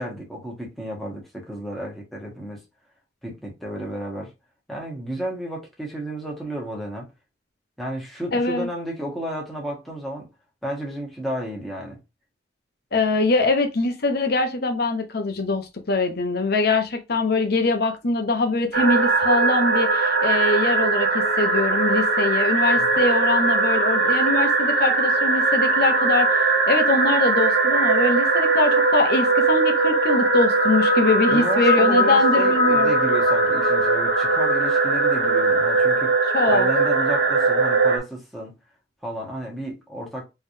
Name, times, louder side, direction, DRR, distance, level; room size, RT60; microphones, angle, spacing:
voice 1, 0.0-2.6 3.2-4.3 4.7-7.1 7.8-10.3 10.6-12.0 22.8-23.0 31.3-36.1 36.4-38.5 39.0-40.2, right 1 dB, ahead, 1.4 m, -32 dB
voice 2, 8.3-8.7 12.9-32.9 36.3-36.7, left 3 dB, 60° left, 1.0 m, -23 dB
sound 1, 18.7-38.0, right 3 dB, 65° right, 1.8 m, -20 dB
3.8 x 3.4 x 2.7 m
head